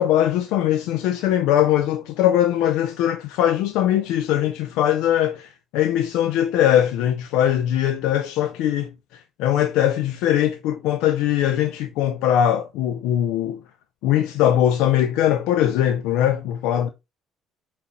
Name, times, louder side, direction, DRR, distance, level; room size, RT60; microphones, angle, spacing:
voice 1, 0.0-8.9 9.4-13.6 14.0-16.9, left 11 dB, 80° left, 0.4 m, -21 dB
5.1 x 2.9 x 2.9 m
supercardioid pair, 65°, 0 cm